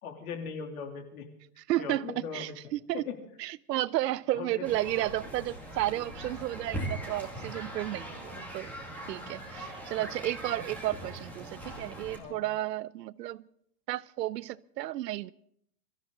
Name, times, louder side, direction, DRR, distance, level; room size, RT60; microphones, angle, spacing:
voice 1, 0.0-1.3 1.8-3.2 4.3-4.7 12.2-12.4, left 6 dB, 60° left, 3.3 m, -40 dB
voice 2, 1.7-2.1 2.3-3.0 3.4-8.7 9.1-13.4 13.9-15.3, right 15 dB, 80° right, 0.8 m, -32 dB
sound 1, 4.6-12.2, right 1 dB, 5° left, 2.3 m, -40 dB
23.5 x 14.5 x 3.9 m
supercardioid pair, 170°, 48 cm